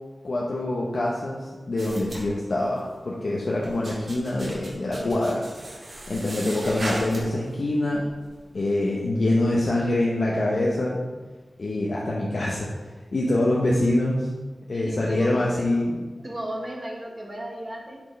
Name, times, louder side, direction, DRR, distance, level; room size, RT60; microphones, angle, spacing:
voice 1, 0.2-5.5 6.1-8.1 8.5-11.0 11.6-12.7 13.1-14.3 14.7-16.0, left 1 dB, 65° left, -4 dB, 0.9 m, -25 dB
sound 1, 1.8-2.9 3.4-7.5 7.9-8.4, right 1 dB, 65° right, 2.0 m, -37 dB
voice 2, 14.7-15.7 16.2-18.0, right 1 dB, 30° right, -1 dB, 1.3 m, -35 dB
9.5 x 4.5 x 3.3 m, 1.3 s
wide cardioid pair, 95°, 0 cm